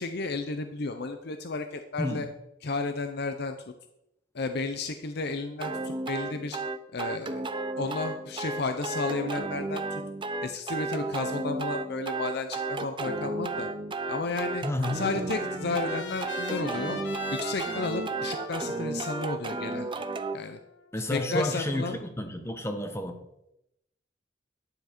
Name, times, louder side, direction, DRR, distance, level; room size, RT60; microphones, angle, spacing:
voice 1, 0.0-2.3 2.6-3.6 4.3-6.6 6.9-7.4 7.8-10.0 10.4-13.7 14.1-14.6 14.9-17.0 17.3-19.9 20.3-20.6 21.1-22.0, left 3 dB, 60° left, 7 dB, 0.7 m, -32 dB
sound 1, 5.6-20.4, right 3 dB, 25° right, 0.6 m, -33 dB
voice 2, 14.6-15.0 20.9-23.2, left 1 dB, 15° left, 5 dB, 1.0 m, -31 dB
Trumpet, 15.1-20.9, left 3 dB, 80° left, 1.3 m, -43 dB
11.0 x 7.2 x 4.4 m, 0.84 s
head